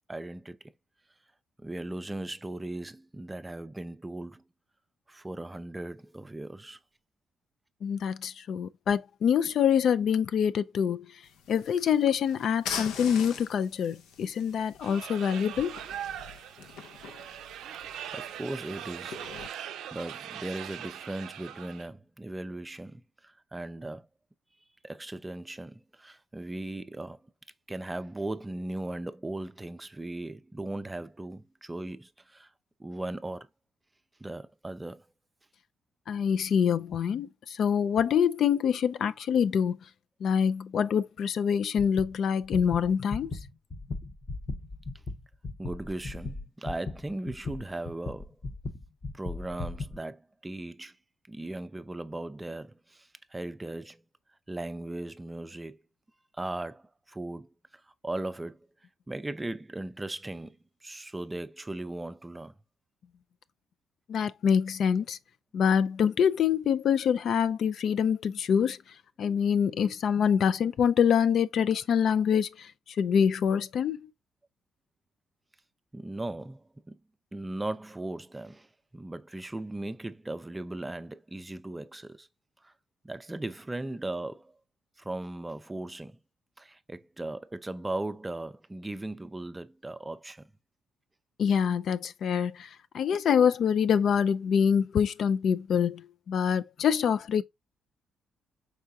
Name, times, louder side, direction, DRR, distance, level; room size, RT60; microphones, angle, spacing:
voice 1, 0.1-0.6 1.6-4.4 5.1-6.8 17.8-19.3 19.9-24.1 24.8-27.2 27.7-32.5 32.8-33.5 34.2-35.0 45.6-48.4 49.1-50.9 51.3-54.0 54.5-55.8 56.3-58.7 59.1-62.5 75.9-77.0 77.3-78.7 78.9-82.3 82.6-82.7 83.0-84.5 85.0-86.2 86.6-90.5, right 2 dB, 15° right, 0.4 m, -38 dB
voice 2, 7.8-11.0 11.5-15.8 36.1-39.8 40.2-43.3 64.1-65.2 65.5-68.8 69.2-72.7 73.0-74.1 91.4-92.7 92.9-97.4, left 7 dB, 65° left, 0.3 m, -25 dB
sound 1, 11.2-19.5, left 6 dB, 90° left, 0.7 m, -43 dB
sound 2, 14.8-21.9, right 10 dB, 80° right, 0.4 m, -41 dB
sound 3, 41.8-42.1 42.4-50.0, left 3 dB, 35° left, 0.8 m, -37 dB
4.7 x 3.5 x 2.7 m
cardioid pair, 90°, 0 cm